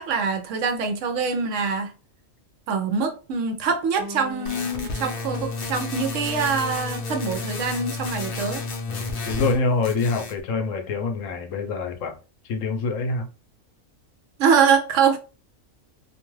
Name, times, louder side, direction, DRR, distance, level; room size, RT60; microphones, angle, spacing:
voice 1, 0.0-1.9 2.7-8.6 14.4-15.2, right 5 dB, 70° right, 0.9 m, -24 dB
sound 1, 4.0-9.8, left 1 dB, 30° right, 0.4 m, -41 dB
sound 2, 4.5-9.6 9.8-10.4, left 3 dB, 55° left, 0.7 m, -31 dB
voice 2, 8.9-12.2 12.4-13.3, left 3 dB, 75° left, 1.0 m, -26 dB
2.6 x 2.3 x 3.0 m
omnidirectional pair, 1.4 m